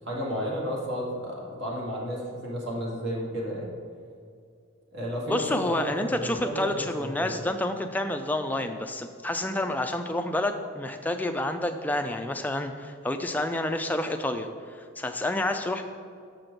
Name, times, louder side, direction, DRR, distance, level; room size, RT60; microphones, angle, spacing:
voice 1, 0.0-3.7 4.9-7.4, equal, 55° right, -3 dB, 2.0 m, -32 dB
voice 2, 5.3-14.5 15.0-15.8, left 1 dB, 10° left, 5 dB, 0.4 m, -29 dB
6.9 x 6.0 x 5.1 m, 2.3 s
head